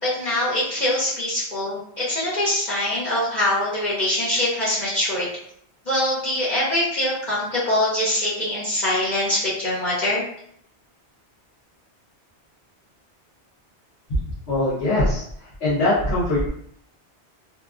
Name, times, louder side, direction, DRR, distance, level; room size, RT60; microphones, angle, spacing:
voice 1, 0.0-5.3 5.9-10.2, left 1 dB, 45° left, -8 dB, 0.8 m, -23 dB
voice 2, 14.5-16.5, left 1 dB, 70° left, -10 dB, 1.2 m, -22 dB
2.8 x 2.3 x 2.4 m, 0.68 s
omnidirectional pair, 1.2 m